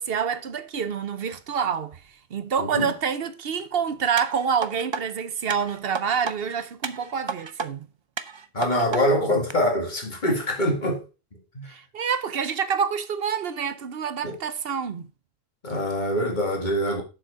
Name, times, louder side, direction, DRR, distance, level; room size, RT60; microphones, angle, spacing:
voice 1, 0.0-2.0 2.3-7.9 11.7-15.1, right 7 dB, 65° right, 1.0 m, -27 dB
voice 2, 2.6-2.9 8.5-11.0 11.5-11.7 14.2-14.4 15.6-17.0, equal, 45° left, 2.3 m, -24 dB
sound 1, 4.2-5.0 5.5-6.4 6.8-7.7 8.2-9.0 9.5-9.6, right 5 dB, 40° right, 0.4 m, -32 dB
7.1 x 6.5 x 4.8 m
omnidirectional pair, 1.1 m